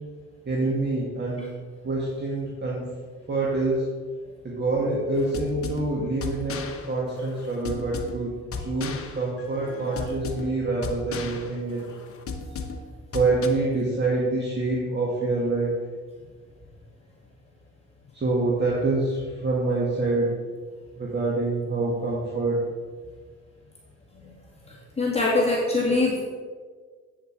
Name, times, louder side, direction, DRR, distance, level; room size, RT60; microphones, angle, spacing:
voice 1, 0.5-1.5 1.8-3.0 3.3-3.9 4.4-8.3 8.6-11.8 13.1-15.7 18.1-20.4 21.0-22.6, right 2 dB, 35° right, -3 dB, 1.9 m, -26 dB
sound 1, 5.2-13.5, left 4 dB, 50° left, 1.1 m, -36 dB
voice 2, 24.6-26.2, left 2 dB, 20° left, -5 dB, 2.2 m, -24 dB
8.7 x 7.3 x 4.6 m, 1.5 s
cardioid pair, 90°, 30 cm